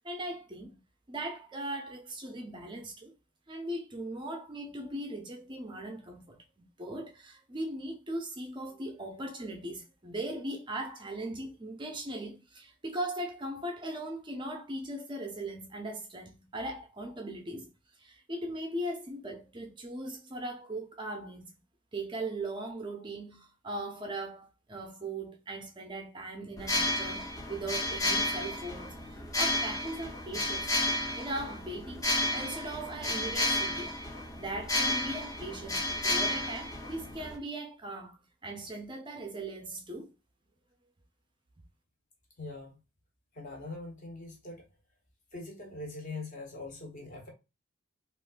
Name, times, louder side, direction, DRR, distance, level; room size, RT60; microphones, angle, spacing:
voice 1, 0.0-0.8 1.1-3.1 3.5-6.4 6.8-17.7 18.0-21.5 21.9-30.8 31.2-34.0 34.4-40.1, right 1 dB, 25° right, 0.4 m, -39 dB
sound 1, 26.6-37.4, left 1 dB, 15° left, 0.7 m, -32 dB
voice 2, 42.4-42.7 43.3-44.6 45.3-47.3, left 2 dB, 40° left, 1.1 m, -42 dB
3.5 x 2.4 x 2.4 m
head